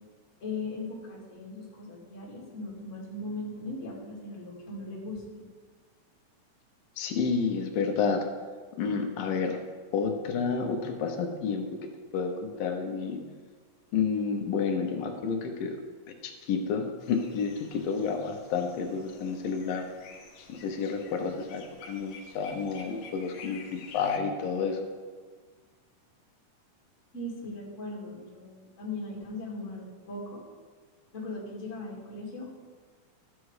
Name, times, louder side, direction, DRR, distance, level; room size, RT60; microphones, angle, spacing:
voice 1, 0.4-5.5 27.1-30.4 31.1-32.5, left 2 dB, 25° left, -4 dB, 2.4 m, -39 dB
voice 2, 7.0-8.2 8.8-9.6 9.9-11.7 12.1-13.2 13.9-15.8 16.2-19.9 20.5-24.8, left 5 dB, 80° left, 3 dB, 2.6 m, -30 dB
sound 1, 17.0-24.2, left 4 dB, 65° left, 2.3 m, -50 dB
13.5 x 7.6 x 4.8 m, 1.5 s
omnidirectional pair, 4.0 m